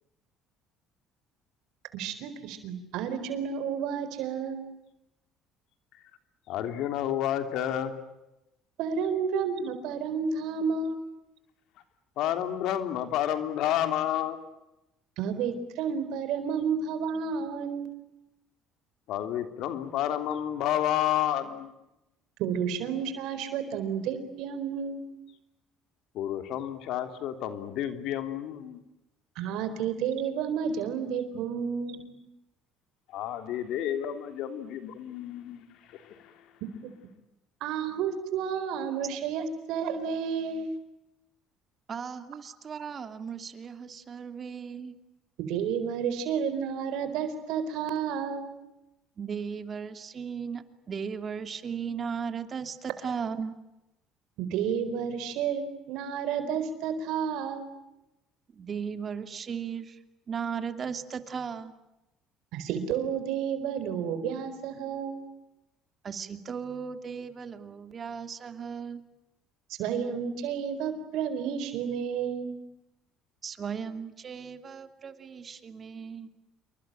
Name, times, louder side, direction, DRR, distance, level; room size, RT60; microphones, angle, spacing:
voice 1, 1.9-4.7 8.8-11.0 15.2-17.9 22.4-25.0 29.4-32.1 37.6-40.7 45.4-48.5 54.4-57.7 62.5-65.2 69.7-72.5, right 7 dB, 75° right, 10 dB, 4.3 m, -31 dB
voice 2, 6.5-8.0 12.2-14.4 19.1-21.7 26.1-28.8 33.1-36.4, left 11 dB, 70° left, 9 dB, 3.2 m, -30 dB
voice 3, 41.9-45.0 49.2-53.5 58.5-60.0 60.3-61.7 66.0-69.0 73.4-76.3, right 6 dB, 40° right, 9 dB, 2.8 m, -36 dB
28.0 x 23.0 x 9.0 m, 0.92 s
supercardioid pair, 95°, 0 cm